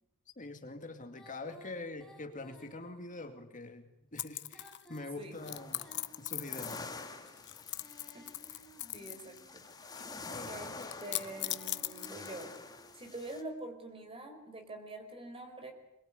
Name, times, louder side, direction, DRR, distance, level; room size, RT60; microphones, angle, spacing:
voice 1, 0.4-5.8 6.2-6.8 10.3-10.5 10.8-10.9, left 2 dB, 35° left, 7 dB, 2.3 m, -44 dB
Female singing, 1.1-3.3 4.4-6.7 7.5-9.6 10.9-13.1, equal, ahead, 5.2 m, -58 dB
sound 1, 4.2-5.0 5.4-7.0 7.2-9.4 9.6-10.2 10.8-12.5, left 15 dB, 55° left, 0.9 m, -39 dB
sound 2, 5.3-13.4, left 3 dB, 20° left, 2.8 m, -48 dB
voice 2, 8.1-8.6 8.9-9.6 10.5-10.7 11.0-12.5 12.9-15.7, right 2 dB, 25° right, 6 dB, 5.0 m, -45 dB
25.0 x 23.0 x 9.5 m, 0.86 s
head